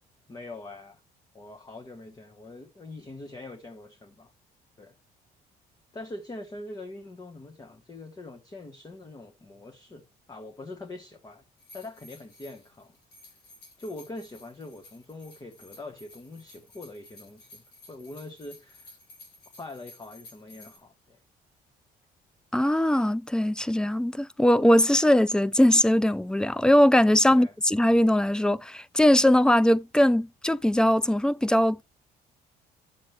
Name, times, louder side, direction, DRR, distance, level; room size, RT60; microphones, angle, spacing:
voice 1, 0.3-1.0 1.3-4.3 4.8-4.9 5.9-11.4 11.7-13.0 13.8-17.6 17.9-19.0 19.6-21.2 27.3-27.5, left 2 dB, 25° left, 1.3 m, -43 dB
sound 1, 11.6-20.8, left 2 dB, 80° left, 4.1 m, -53 dB
voice 2, 22.5-31.8, left 1 dB, 5° left, 0.4 m, -21 dB
10.5 x 7.3 x 3.3 m
cardioid pair, 110°, 17 cm